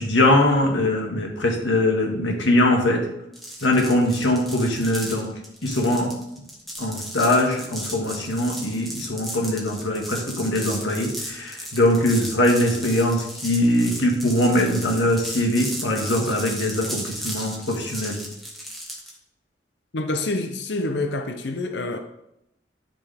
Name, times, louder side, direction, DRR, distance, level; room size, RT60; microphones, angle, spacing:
voice 1, 0.0-3.0 3.6-5.3 5.6-6.1 6.8-18.2, left 1 dB, 85° left, 1 dB, 1.8 m, -22 dB
sound 1, 3.3-19.2, equal, ahead, 1.5 m, -35 dB
voice 2, 19.9-22.0, left 2 dB, 65° left, 6 dB, 0.6 m, -27 dB
13.0 x 5.1 x 3.5 m, 0.83 s
head